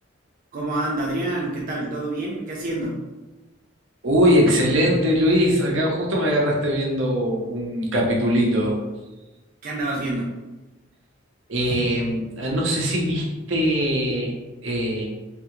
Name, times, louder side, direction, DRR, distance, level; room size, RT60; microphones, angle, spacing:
voice 1, 0.5-3.0 9.6-10.3, right 2 dB, 50° right, -3 dB, 0.4 m, -27 dB
voice 2, 4.0-8.8 11.5-14.3 14.6-15.0, equal, 75° right, -2 dB, 0.7 m, -21 dB
3.3 x 2.3 x 2.9 m, 1.1 s
head